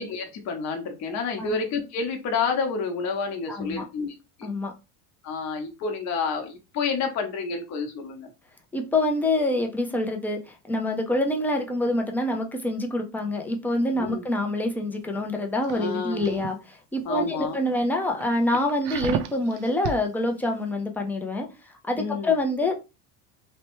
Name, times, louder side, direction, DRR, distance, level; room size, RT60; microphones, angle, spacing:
voice 1, 0.0-4.1 5.2-8.3 13.9-14.2 15.7-16.4 17.0-17.6 22.0-22.3, left 4 dB, 45° left, 0.9 m, -29 dB
voice 2, 3.5-3.8 4.4-4.7 8.7-22.7, left 1 dB, 5° left, 0.4 m, -26 dB
sound 1, 15.6-16.5 17.0-17.2 17.7-17.8 18.2-20.0 20.4-20.6, right 7 dB, 65° right, 0.5 m, -32 dB
3.1 x 2.1 x 3.0 m
supercardioid pair, 125°, 38 cm